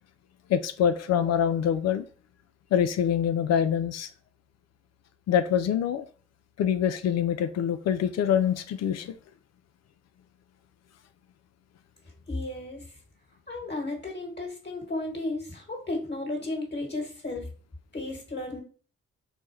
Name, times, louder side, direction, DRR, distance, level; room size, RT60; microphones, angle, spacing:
voice 1, 0.5-2.0 2.7-4.1 5.3-6.1 6.6-9.1, left 8 dB, 60° left, 10 dB, 0.4 m, -25 dB
voice 2, 12.3-12.9 13.5-17.4 17.9-18.6, left 2 dB, 35° left, 1 dB, 1.5 m, -34 dB
4.1 x 2.2 x 3.2 m, 0.40 s
hypercardioid pair, 45°, 31 cm